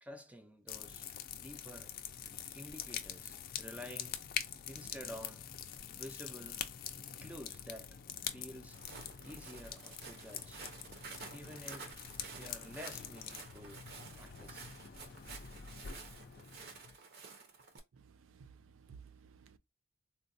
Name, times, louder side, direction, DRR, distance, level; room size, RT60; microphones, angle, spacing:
voice 1, 0.0-1.9 2.5-4.2 4.7-5.5 5.9-6.6 7.2-8.8 9.2-10.7 11.3-11.9 12.3-14.7 16.0-16.1, equal, 5° right, 0.5 m, -50 dB
sound 1, 0.7-17.0, left 9 dB, 50° left, 0.4 m, -45 dB
Walk footsteps, 8.7-17.8, right 4 dB, 55° right, 0.8 m, -51 dB
voice 2, 18.0-18.5 18.8-19.6, right 6 dB, 80° right, 0.4 m, -56 dB
3.8 x 2.2 x 2.6 m
head